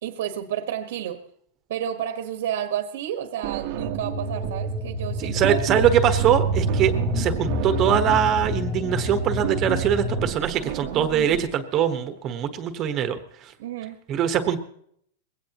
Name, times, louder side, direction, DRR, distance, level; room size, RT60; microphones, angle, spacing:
voice 1, 0.0-1.2 1.7-5.6 13.6-14.0, right 10 dB, 70° right, 7 dB, 1.4 m, -31 dB
sound 1, 3.4-4.7 5.0-11.4, right 14 dB, 45° right, 1.0 m, -33 dB
sound 2, 3.7-10.3, right 1 dB, 20° left, 1.4 m, -27 dB
voice 2, 5.2-13.5 14.1-14.6, right 9 dB, 30° right, 8 dB, 1.3 m, -23 dB
21.5 x 17.0 x 3.0 m, 0.67 s
supercardioid pair, 155°, 0 cm